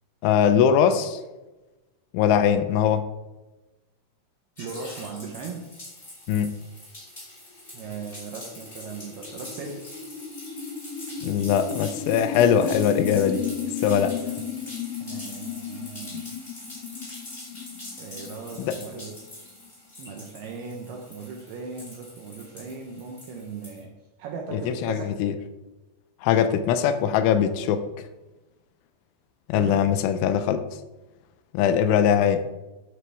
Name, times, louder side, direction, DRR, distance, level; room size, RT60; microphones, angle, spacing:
voice 1, 0.2-1.2 2.1-3.1 6.3-6.6 11.2-13.4 13.8-14.2 18.6-18.8 24.5-25.3 26.2-27.9 29.5-30.7 31.5-32.5, left 8 dB, 85° left, 11 dB, 3.0 m, -21 dB
sound 1, 4.6-23.8, left 1 dB, 15° left, 2.2 m, -43 dB
voice 2, 4.6-5.7 7.7-9.9 15.0-16.3 18.0-23.9 24.2-25.2 29.5-29.9, right 4 dB, 80° right, 1 dB, 2.3 m, -38 dB
sound 2, 7.6-19.7, left 6 dB, 60° left, 2.7 m, -35 dB
10.5 x 8.0 x 3.5 m, 1.1 s
omnidirectional pair, 5.5 m